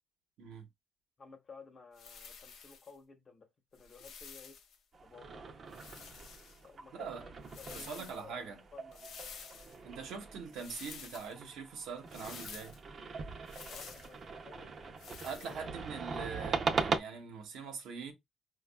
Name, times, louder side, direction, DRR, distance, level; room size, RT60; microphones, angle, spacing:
voice 1, 1.2-4.6 5.0-5.5 6.6-9.1 13.7-15.7, left 5 dB, 40° left, 0.9 m, -55 dB
sound 1, 1.9-2.9 3.7-4.8 5.7-6.6 7.4-8.2 8.9-9.8 10.5-11.3 12.1-12.8 13.5-14.1 15.0-15.6, left 6 dB, 75° left, 0.6 m, -50 dB
sound 2, 4.9-17.0, right 4 dB, 50° right, 0.6 m, -40 dB
voice 2, 7.7-8.6 9.8-12.8 15.2-18.1, right 5 dB, 85° right, 0.9 m, -43 dB
5.1 x 2.3 x 2.2 m
cardioid pair, 90°, 0 cm